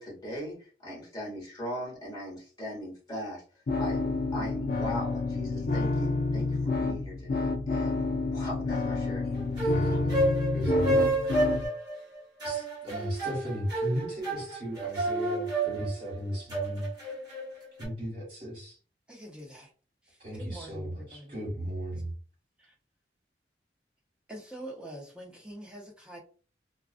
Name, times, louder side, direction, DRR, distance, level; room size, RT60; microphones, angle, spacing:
voice 1, 0.0-3.4 3.8-9.2 10.2-10.3, equal, 25° left, -5 dB, 1.2 m, -39 dB
sound 1, 3.7-11.7, left 3 dB, 55° left, 0.4 m, -29 dB
sound 2, 9.3-17.9, right 2 dB, 25° right, 1.1 m, -30 dB
voice 2, 9.6-10.3 10.5-11.3 12.4-16.9 17.8-18.8 20.2-22.1, equal, 50° right, -8 dB, 1.3 m, -36 dB
voice 3, 19.1-19.7 20.0-21.4 22.6-22.7 24.3-26.2, right 1 dB, 5° right, -1 dB, 0.6 m, -45 dB
2.4 x 2.3 x 2.4 m, 0.38 s
head